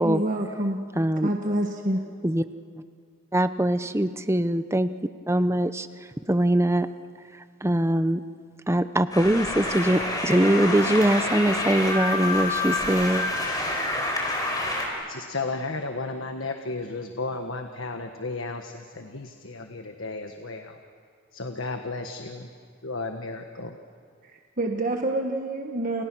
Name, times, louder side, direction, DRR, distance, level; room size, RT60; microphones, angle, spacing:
voice 1, 0.0-0.8 1.2-2.0 24.6-26.0, right 1 dB, 40° right, 2 dB, 1.4 m, -27 dB
voice 2, 0.9-1.3 2.2-2.4 3.3-4.9 5.3-5.9 6.3-6.9 7.6-8.2 8.7-13.3, right 1 dB, 15° right, 12 dB, 0.7 m, -22 dB
sound 1, 9.1-14.9, left 2 dB, 20° left, 4.7 m, -27 dB
voice 3, 15.1-20.8 21.3-22.5 22.8-23.8, left 3 dB, 70° left, 5 dB, 1.4 m, -33 dB
30.0 x 29.0 x 6.2 m, 2.2 s
head